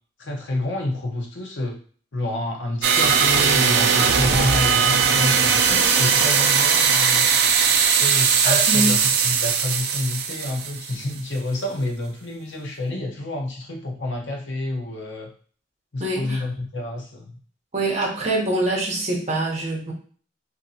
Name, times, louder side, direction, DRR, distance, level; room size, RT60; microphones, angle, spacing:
voice 1, 0.2-1.8 2.1-7.3 8.0-15.3 15.9-17.4, left 1 dB, 70° left, 1 dB, 0.7 m, -29 dB
sound 1, 2.8-11.1, right 6 dB, 55° right, 0.3 m, -19 dB
voice 2, 8.4-8.9 16.0-16.4 17.7-19.9, right 2 dB, 35° right, -1 dB, 0.8 m, -24 dB
2.9 x 2.6 x 2.7 m, 0.44 s
head